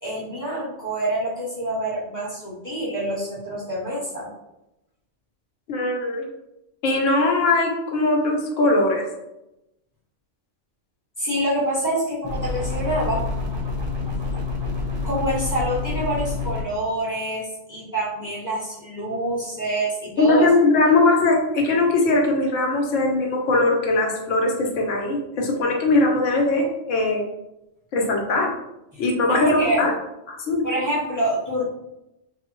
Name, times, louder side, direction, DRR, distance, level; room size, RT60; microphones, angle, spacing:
voice 1, 0.0-4.3 11.2-13.2 15.0-20.5 28.9-29.0 29.3-29.8 30.6-31.6, right 1 dB, 20° left, -7 dB, 0.8 m, -26 dB
voice 2, 5.7-6.3 6.8-9.0 20.2-27.2 27.9-28.5 29.0-29.9 30.3-30.6, left 2 dB, 80° left, 1 dB, 1.0 m, -20 dB
sound 1, 12.2-16.6, left 3 dB, 35° right, 0.4 m, -27 dB
3.5 x 2.0 x 2.9 m, 0.90 s
omnidirectional pair, 1.3 m